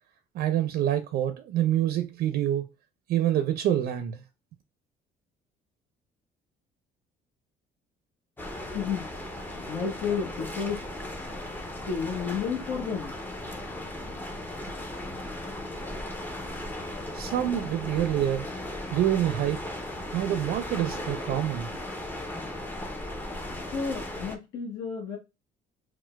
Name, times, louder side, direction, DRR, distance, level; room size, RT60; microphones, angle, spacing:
voice 1, 0.3-2.7 3.1-4.2 17.1-18.5 18.9-19.6 20.1-21.7, right 11 dB, 65° right, 0.4 m, -26 dB
sound 1, 8.4-24.4, left 1 dB, 10° left, 0.5 m, -37 dB
voice 2, 8.7-9.1 9.7-10.8 11.9-13.1 23.7-25.2, left 6 dB, 70° left, 0.9 m, -31 dB
4.4 x 2.1 x 2.2 m
cardioid pair, 110°, 17 cm